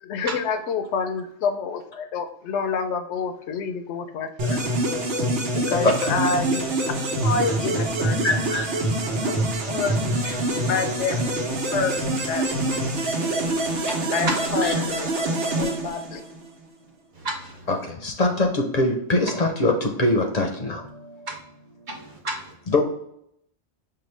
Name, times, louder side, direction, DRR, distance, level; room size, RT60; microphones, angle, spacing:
voice 1, 0.0-4.6 5.6-6.7 7.2-8.4 9.2-10.0 10.2-10.4 10.6-11.2 11.7-12.4 14.1-15.1 15.5-16.3, left 5 dB, 80° left, 8 dB, 0.9 m, -28 dB
sound 1, 4.4-16.5, right 1 dB, 85° right, 1.1 m, -25 dB
voice 2, 8.2-8.6 14.6-14.7 17.7-17.8 18.0-20.8 22.7-22.8, left 2 dB, 45° left, 3 dB, 0.6 m, -22 dB
voice 3, 13.6-14.4 17.2-17.7 21.3-21.4 21.9-22.5, right 2 dB, 50° right, 2 dB, 0.7 m, -32 dB
5.7 x 2.2 x 3.2 m, 0.74 s
omnidirectional pair, 1.2 m